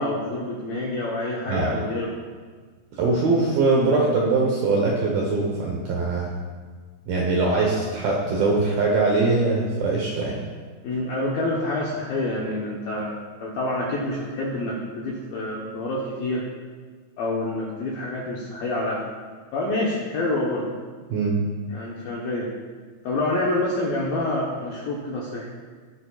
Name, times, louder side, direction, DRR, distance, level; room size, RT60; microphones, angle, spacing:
voice 1, 0.0-2.1 10.8-16.5 17.2-19.0 19.5-20.8 21.7-22.5 23.0-25.5, left 2 dB, 75° left, -4 dB, 2.1 m, -27 dB
voice 2, 2.9-6.3 7.1-10.4 21.1-21.4, right 3 dB, 75° right, -2 dB, 2.2 m, -22 dB
19.5 x 8.7 x 2.4 m, 1.5 s
omnidirectional pair, 5.8 m